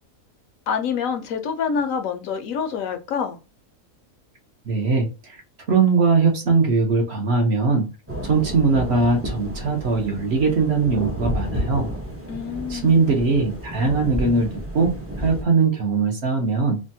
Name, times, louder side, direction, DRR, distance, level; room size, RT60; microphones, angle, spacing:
voice 1, 0.7-3.4 12.3-12.9, left 6 dB, 70° left, 1.0 m, -26 dB
voice 2, 4.7-5.4 5.7-7.9 8.2-11.9 12.7-16.8, right 4 dB, 55° right, 0.9 m, -20 dB
sound 1, 8.1-15.4, right 1 dB, 20° right, 0.4 m, -31 dB
3.4 x 2.1 x 2.6 m
omnidirectional pair, 1.5 m